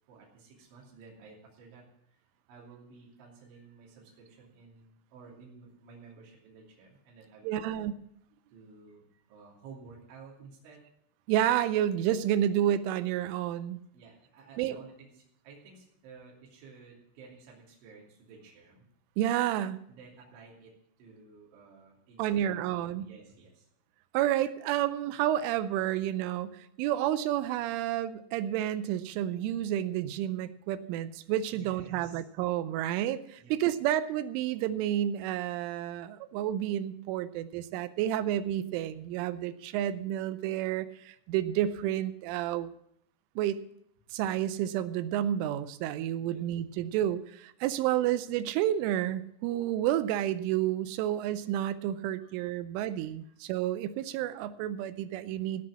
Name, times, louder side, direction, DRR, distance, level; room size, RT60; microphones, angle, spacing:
voice 1, 0.1-2.2 2.5-7.9 8.5-10.8 13.9-18.9 19.9-23.7 31.5-32.2 33.4-33.6 46.2-46.5 52.2-52.3 52.9-53.3, right 4 dB, 65° right, -3 dB, 5.1 m, -53 dB
voice 2, 7.4-7.9 11.3-13.8 14.6-14.8 19.2-19.8 22.2-23.1 24.1-42.7 43.4-43.6 44.1-55.6, right 12 dB, 85° right, 13 dB, 2.9 m, -30 dB
17.5 x 5.9 x 7.3 m, 0.72 s
omnidirectional pair, 6.0 m